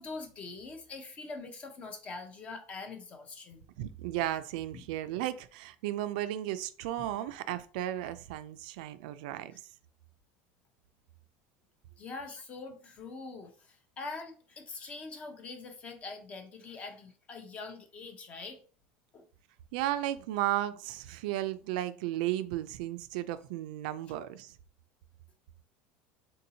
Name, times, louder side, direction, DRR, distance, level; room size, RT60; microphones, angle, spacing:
voice 1, 0.0-3.7 4.7-4.9 7.0-7.1 12.0-18.6 19.1-19.2, left 3 dB, 25° left, 0.6 m, -44 dB
voice 2, 3.8-9.5 19.7-24.6, right 13 dB, 75° right, 0.3 m, -34 dB
3.8 x 2.6 x 2.8 m
cardioid pair, 160°, 5 cm